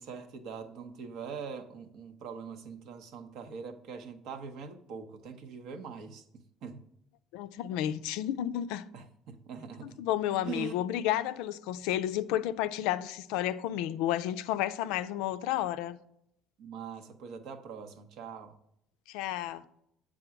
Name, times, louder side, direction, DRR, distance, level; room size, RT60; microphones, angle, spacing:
voice 1, 0.0-6.8 8.9-10.0 10.4-10.8 16.6-18.5, right 6 dB, 65° right, 0.8 m, -43 dB
voice 2, 7.3-8.8 10.0-16.0 19.1-19.6, left 12 dB, 75° left, 0.4 m, -31 dB
7.8 x 3.7 x 5.9 m
hypercardioid pair, 65°, 0 cm